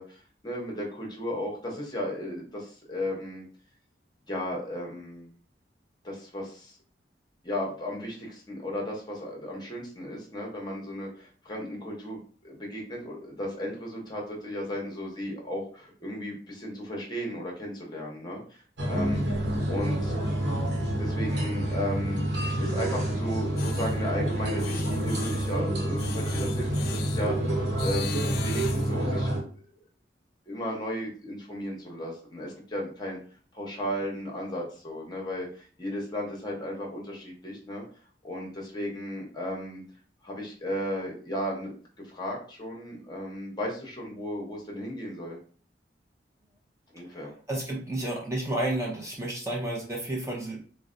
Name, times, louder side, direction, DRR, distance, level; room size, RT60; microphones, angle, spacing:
voice 1, 0.0-3.5 4.3-5.3 6.0-6.8 7.4-19.2 19.7-20.1 21.0-22.2 22.6-27.4 27.8-29.3 29.5-29.6 30.5-33.2 33.5-37.8 38.2-39.8 40.2-41.7 42.0-45.4 46.9-47.3, equal, 25° left, -1 dB, 0.8 m, -35 dB
sound 1, 18.8-29.4, right 1 dB, 85° right, 0.9 m, -28 dB
sound 2, 23.6-24.0 24.6-25.6 26.0-27.3 27.8-29.0, left 9 dB, 60° left, 0.3 m, -40 dB
voice 2, 47.5-50.6, right 1 dB, 15° right, -2 dB, 0.6 m, -31 dB
3.9 x 2.1 x 2.5 m, 0.42 s
head